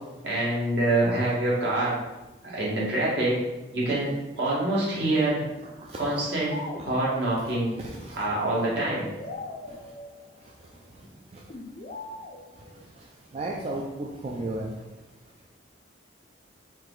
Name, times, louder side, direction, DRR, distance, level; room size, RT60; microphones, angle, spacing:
voice 1, 0.2-2.0 2.4-3.3 3.7-5.4 6.0-6.6 6.8-7.7 8.1-9.1, right 1 dB, 65° right, -6 dB, 1.5 m, -25 dB
sound 1, 6.5-7.4 8.8-10.7 11.5-12.8, left 2 dB, 40° left, 0.5 m, -40 dB
voice 2, 7.8-8.2 13.3-14.7, right 2 dB, 35° right, -2 dB, 0.4 m, -33 dB
4.5 x 3.0 x 3.8 m, 1.0 s
head